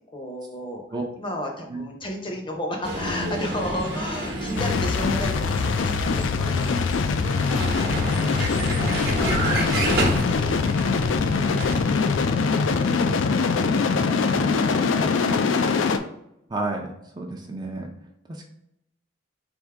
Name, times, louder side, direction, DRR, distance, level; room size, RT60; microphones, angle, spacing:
voice 1, 0.1-0.8 1.2-7.8 8.9-10.9 11.4-12.0 12.7-13.9, left 1 dB, 25° left, 2 dB, 0.6 m, -35 dB
Vehicle, 2.8-11.9, right 1 dB, 55° right, 0.9 m, -30 dB
sound 1, 4.6-16.0, left 4 dB, 85° left, 0.4 m, -23 dB
voice 2, 16.5-17.9 18.3-18.4, right 2 dB, 20° right, 0 dB, 0.5 m, -31 dB
3.5 x 2.6 x 4.6 m, 0.79 s
head